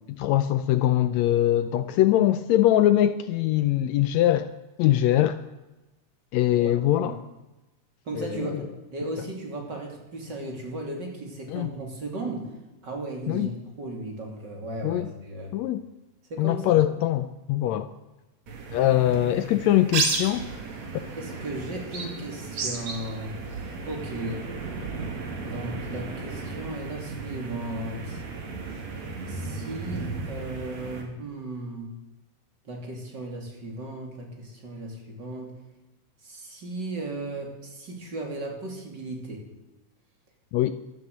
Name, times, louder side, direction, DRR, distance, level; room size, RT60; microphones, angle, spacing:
voice 1, 0.2-4.5 4.8-5.4 6.3-7.2 8.2-8.5 11.5-11.7 13.3-13.5 14.8-15.1 15.5-15.8 16.4-17.9 18.7-20.5 40.5-40.7, left 13 dB, 75° left, 12 dB, 1.7 m, -22 dB
voice 2, 6.5-7.2 8.0-8.6 8.9-12.5 12.8-15.5 16.3-16.8 21.2-23.4 23.8-24.5 25.4-28.2 29.3-31.9 32.6-35.5 36.2-39.5, right 2 dB, 35° right, 1 dB, 3.2 m, -36 dB
sound 1, 18.5-31.0, right 4 dB, 65° right, 3.5 m, -34 dB
14.0 x 12.5 x 7.9 m, 1.1 s
omnidirectional pair, 3.4 m